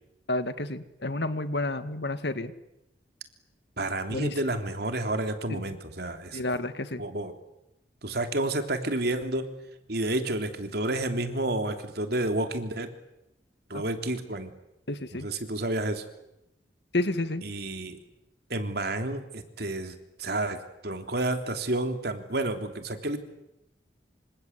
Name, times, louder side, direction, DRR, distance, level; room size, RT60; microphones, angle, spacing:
voice 1, 0.3-2.5 4.1-4.3 5.5-5.6 6.3-7.0 13.7-13.8 14.9-15.3 16.9-17.4, left 2 dB, 70° left, 11 dB, 2.0 m, -30 dB
voice 2, 3.8-6.4 7.0-7.3 8.0-9.5 9.9-12.9 13.7-14.5 15.1-16.0 17.4-18.0 18.5-23.2, right 2 dB, 65° right, 6 dB, 3.3 m, -30 dB
27.5 x 26.0 x 8.3 m, 0.87 s
head